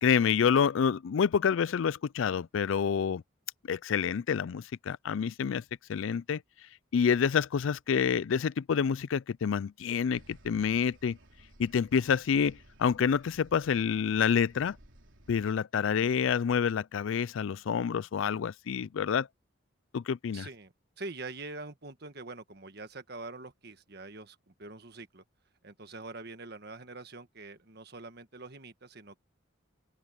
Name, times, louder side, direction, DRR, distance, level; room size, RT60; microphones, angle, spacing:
voice 1, 0.0-3.2 3.6-5.6 5.9-6.4 6.9-11.2 11.6-14.8 15.3-19.3 19.9-20.5, left 7 dB, 75° left, 0.4 m, -28 dB
sound 1, 10.1-15.5, right 1 dB, 70° right, 3.4 m, -57 dB
voice 2, 20.3-25.2 25.6-29.2, right 3 dB, 50° right, 1.6 m, -44 dB
open air
head